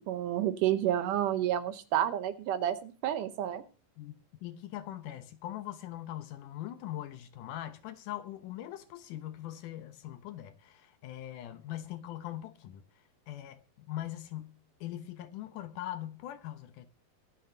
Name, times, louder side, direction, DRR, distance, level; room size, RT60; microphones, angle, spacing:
voice 1, 0.1-3.6, right 11 dB, 75° right, 2.2 m, -30 dB
voice 2, 4.4-12.8 13.3-16.9, left 13 dB, 75° left, 2.1 m, -41 dB
23.5 x 8.3 x 2.7 m
omnidirectional pair, 4.2 m